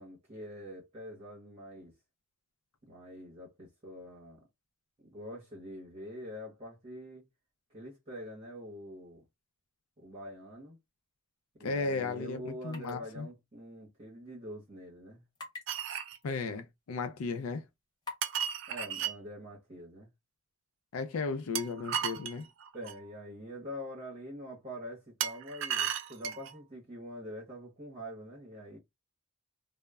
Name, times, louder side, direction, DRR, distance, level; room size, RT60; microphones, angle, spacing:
voice 1, 0.0-1.9 2.8-4.4 5.0-7.3 7.7-9.2 10.0-10.8 11.5-15.2 18.7-20.1 22.7-28.8, equal, 30° right, 0.8 m, -45 dB
voice 2, 11.6-13.3 16.2-17.6 20.9-22.4, left 4 dB, 80° left, 0.4 m, -35 dB
sound 1, 12.7-13.0 13.3-13.4 15.3-15.6 16.2-16.3 17.0-17.1 18.0-18.3, left 3 dB, 20° left, 0.7 m, -43 dB
sound 2, 15.7-16.2 18.2-19.2 21.5-23.0 25.2-26.5, right 9 dB, 55° right, 0.4 m, -34 dB
2.1 x 2.0 x 3.4 m
head